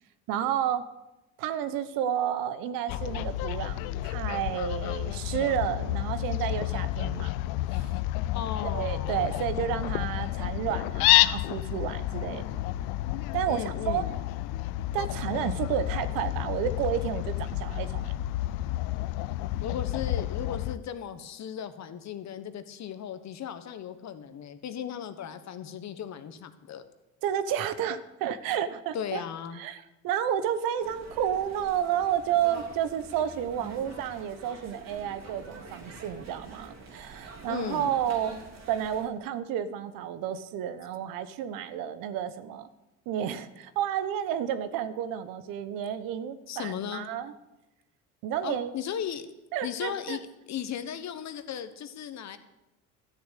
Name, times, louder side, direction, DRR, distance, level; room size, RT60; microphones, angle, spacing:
voice 1, 0.3-0.8 1.4-7.3 7.7-7.9 8.6-12.6 13.3-14.1 14.9-18.1 27.2-29.2 29.5-38.4 38.7-42.7 43.1-47.3 48.2-48.7 49.5-50.2, right 9 dB, 75° right, 13 dB, 1.0 m, -31 dB
Fowl, 2.9-20.8, left 16 dB, 80° left, 0.6 m, -30 dB
voice 2, 8.3-9.2 13.4-14.1 19.6-26.8 28.9-29.6 37.5-37.9 46.5-47.1 48.4-49.3 49.6-52.4, left 9 dB, 50° left, 11 dB, 1.3 m, -36 dB
sound 1, 30.8-39.1, right 3 dB, 50° right, 3.1 m, -46 dB
13.0 x 6.8 x 8.3 m, 0.97 s
supercardioid pair, 80°, 35 cm